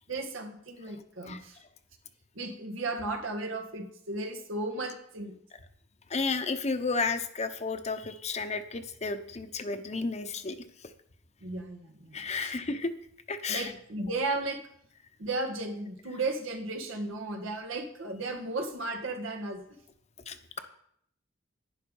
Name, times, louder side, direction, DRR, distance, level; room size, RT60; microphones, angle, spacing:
voice 1, 0.1-1.6 2.4-5.4 11.4-12.8 13.5-14.6 15.2-19.7, right 2 dB, 90° right, 4 dB, 1.9 m, -35 dB
voice 2, 6.1-10.6 12.1-12.9 13.3-13.7 20.3-20.6, left 4 dB, 35° left, 9 dB, 0.9 m, -32 dB
11.0 x 9.8 x 5.5 m, 0.70 s
head